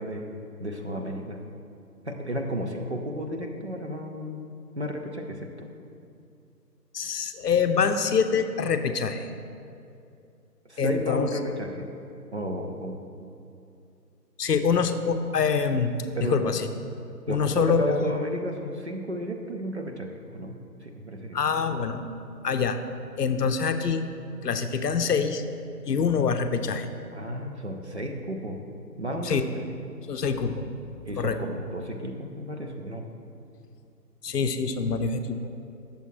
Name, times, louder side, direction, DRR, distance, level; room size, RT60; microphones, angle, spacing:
voice 1, 0.0-1.4 2.0-5.7 10.6-11.9 12.3-13.0 16.2-16.5 17.3-21.4 27.1-28.6 29.0-29.6 31.1-33.1, equal, 45° right, 3 dB, 0.5 m, -33 dB
voice 2, 6.9-9.3 10.8-11.3 14.4-15.9 16.3-16.6 17.3-18.0 21.3-22.0 22.4-22.8 23.2-24.0 24.4-25.4 25.9-26.9 29.2-29.4 30.1-30.7 31.2-31.4 34.2-35.4, left 6 dB, 70° left, 8 dB, 0.6 m, -25 dB
8.6 x 6.9 x 3.1 m, 2.6 s
figure-of-eight pair, 155°, 50 cm